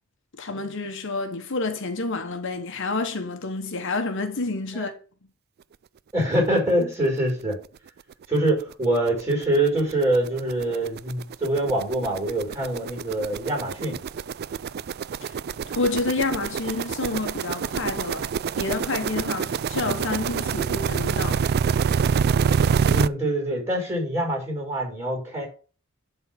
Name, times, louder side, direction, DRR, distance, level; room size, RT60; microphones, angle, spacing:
voice 1, 0.4-4.9 15.2-15.4 15.7-21.5, left 3 dB, 65° left, 1.0 m, -29 dB
voice 2, 6.1-7.6 8.3-14.0 22.9-25.5, right 1 dB, 15° right, 5.9 m, -24 dB
sound 1, 7.6-7.7 8.1-8.2 8.5-23.1, right 6 dB, 50° right, 0.3 m, -26 dB
11.5 x 4.0 x 5.6 m
head